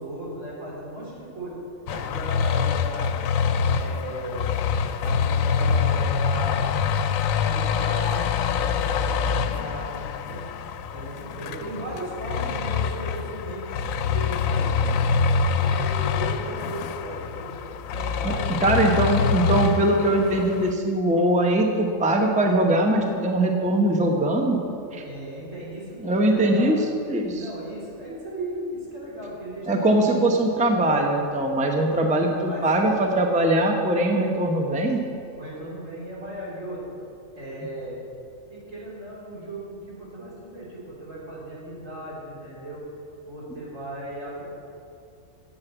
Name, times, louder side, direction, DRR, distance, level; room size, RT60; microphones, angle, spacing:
voice 1, 0.0-1.6 1.9-3.2 3.7-4.6 5.0-6.8 7.4-10.5 10.9-13.7 14.0-14.9 15.6-17.5 17.9-19.3 25.0-26.8 27.3-30.0 32.5-32.6 35.4-37.0 37.3-38.0 38.5-42.8 43.3-44.4, right 1 dB, 70° right, -6 dB, 4.0 m, -36 dB
sound 1, 1.9-20.7, left 6 dB, 85° left, 1.0 m, -25 dB
voice 2, 18.6-24.6 24.9-25.0 26.0-26.8 27.1-27.5 29.7-35.0, right 1 dB, 5° right, 2 dB, 0.8 m, -21 dB
9.7 x 7.9 x 8.0 m, 2.6 s
omnidirectional pair, 1.4 m